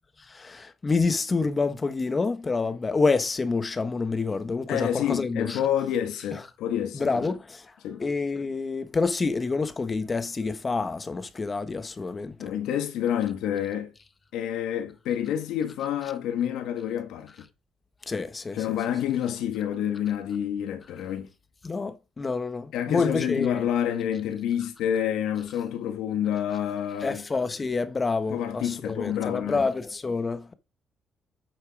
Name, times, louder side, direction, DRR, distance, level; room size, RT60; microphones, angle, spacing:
voice 1, 0.3-5.6 6.3-6.4 6.9-7.7 8.0-12.5 18.1-18.6 21.6-23.7 27.0-30.5, left 4 dB, 30° left, 1.4 m, -28 dB
voice 2, 4.7-7.2 7.8-8.0 12.4-13.9 14.3-17.3 18.5-21.3 22.7-27.2 28.3-29.6, left 10 dB, 90° left, 1.8 m, -28 dB
9.1 x 6.4 x 5.0 m
cardioid pair, 90°, 0 cm